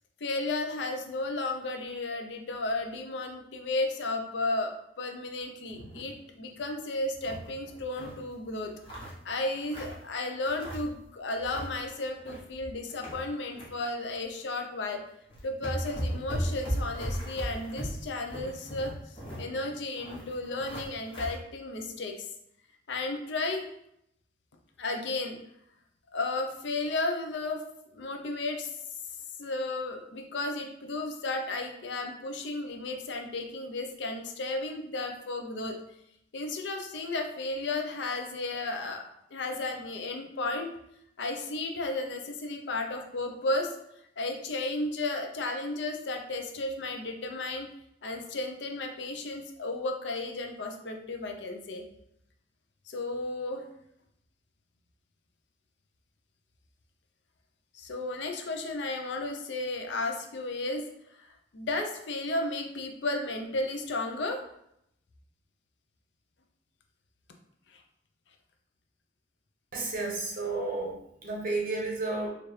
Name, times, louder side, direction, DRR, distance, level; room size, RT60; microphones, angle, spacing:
voice 1, 0.2-8.7 9.0-15.0 15.4-22.3 22.9-23.7 24.8-25.4 26.1-27.6 27.9-28.7 29.4-35.8 36.3-40.7 41.2-43.8 44.2-47.7 48.0-51.8 52.9-53.6 57.7-60.9 61.1-64.4 67.7-67.8, left 2 dB, 75° left, 4 dB, 0.6 m, -33 dB
sound 1, 5.7-6.1 6.5-6.6 6.9-8.2 8.6-10.1 10.4-11.0 11.3-11.7 12.1-13.7 14.1-14.2 14.9-15.0 15.3-21.4, equal, 30° left, 1.1 m, -37 dB
voice 2, 69.7-70.9 71.2-72.3, right 3 dB, 50° right, -1 dB, 1.0 m, -31 dB
4.4 x 2.5 x 3.2 m, 0.77 s
head